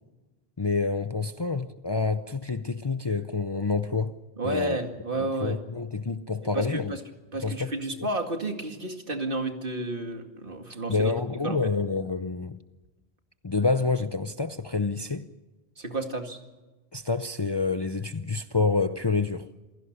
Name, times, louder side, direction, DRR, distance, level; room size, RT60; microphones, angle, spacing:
voice 1, 0.6-4.2 4.4-4.8 5.4-6.9 7.4-7.7 10.9-12.6 13.4-15.3 16.9-19.5, left 4 dB, 30° left, 0.6 m, -27 dB
voice 2, 4.4-5.6 6.5-7.0 7.3-11.1 11.4-11.7 15.8-16.4, right 2 dB, 60° right, 2.4 m, -31 dB
27.5 x 17.0 x 6.7 m
omnidirectional pair, 1.0 m